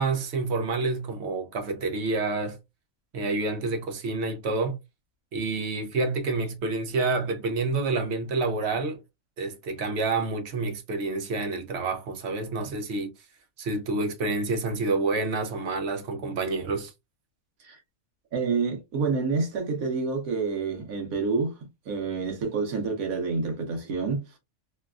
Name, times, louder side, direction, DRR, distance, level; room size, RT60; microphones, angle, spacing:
voice 1, 0.0-2.6 3.1-4.8 5.3-9.0 9.4-13.1 13.6-16.9, right 3 dB, 60° right, 0.8 m, -28 dB
voice 2, 18.3-21.5 21.9-24.2, right 4 dB, 90° right, 1.4 m, -28 dB
3.2 x 2.3 x 2.3 m
omnidirectional pair, 1.4 m